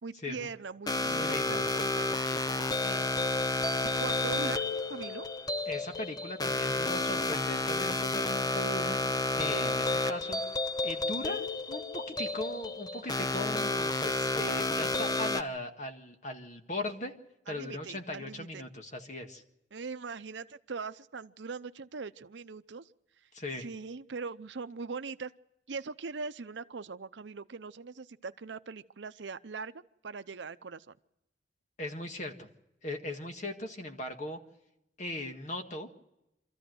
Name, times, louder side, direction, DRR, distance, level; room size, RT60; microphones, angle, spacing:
voice 1, 0.0-2.4 2.8-3.1 3.8-4.6 4.9-5.3 17.5-18.6 19.7-22.9 23.6-25.3 25.7-30.9, right 4 dB, 80° right, 13 dB, 0.7 m, -41 dB
sound 1, 0.9-15.4, left 2 dB, 20° left, 0.7 m, -31 dB
voice 2, 1.1-1.6 5.7-9.0 9.3-10.4 10.8-17.1 17.5-19.4 23.3-23.7 31.8-32.5 32.8-34.4 35.0-35.9, left 1 dB, 40° left, 5 dB, 1.8 m, -38 dB
25.0 x 14.0 x 7.8 m, 0.90 s
head